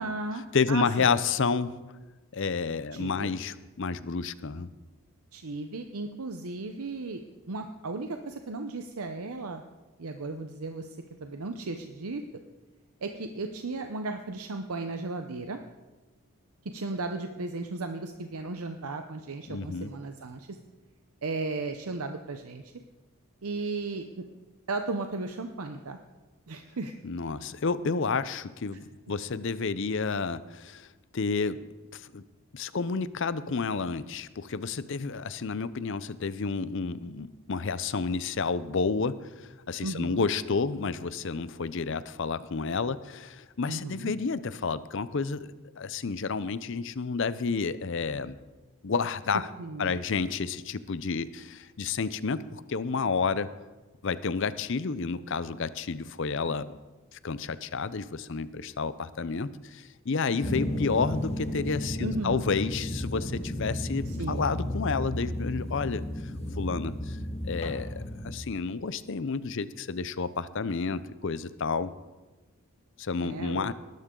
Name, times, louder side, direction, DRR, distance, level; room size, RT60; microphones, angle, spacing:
voice 1, 0.0-1.1 2.9-3.3 5.3-7.2 7.5-9.6 10.0-12.2 13.0-15.6 16.6-20.6 21.2-22.7 23.4-24.2 24.7-26.0 26.5-26.9 39.8-40.2 43.7-44.1 49.6-50.0 62.0-62.4 64.0-64.4 73.2-73.7, right 3 dB, 80° right, 6 dB, 0.8 m, -35 dB
voice 2, 0.5-1.7 2.3-4.7 19.5-19.9 27.0-30.9 31.1-31.6 31.9-32.2 32.5-48.4 48.8-49.5 49.8-53.5 54.0-56.7 57.1-66.0 66.6-67.2 67.4-71.9 73.0-73.7, left 4 dB, 55° left, 15 dB, 0.6 m, -30 dB
sound 1, 60.4-68.3, left 1 dB, 30° left, 1.5 m, -33 dB
19.5 x 12.0 x 3.8 m, 1.2 s
head